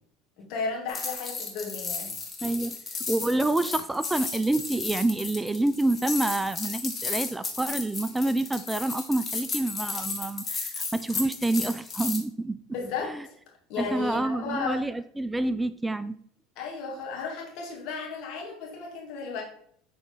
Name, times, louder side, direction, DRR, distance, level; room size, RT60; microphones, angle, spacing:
voice 1, 0.4-2.1 12.7-13.3 13.7-14.8 16.6-19.4, left 5 dB, 60° left, -1 dB, 2.2 m, -34 dB
sound 1, 0.9-12.2, left 4 dB, 30° left, 1.4 m, -34 dB
voice 2, 2.4-2.8 3.1-12.6 13.0-13.3 13.8-16.2, right 2 dB, 10° right, 14 dB, 0.3 m, -28 dB
6.9 x 4.3 x 3.7 m, 0.63 s
hypercardioid pair, 75°, 0 cm